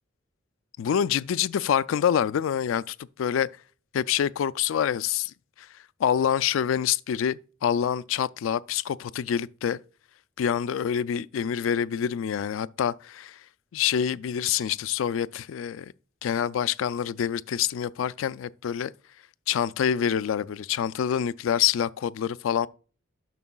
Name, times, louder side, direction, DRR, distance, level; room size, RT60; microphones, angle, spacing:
voice 1, 0.8-3.5 3.9-5.3 6.0-9.8 10.4-13.4 13.7-15.9 16.2-18.9 19.5-22.7, left 8 dB, 75° left, 0.3 m, -26 dB
11.0 x 6.2 x 2.3 m
head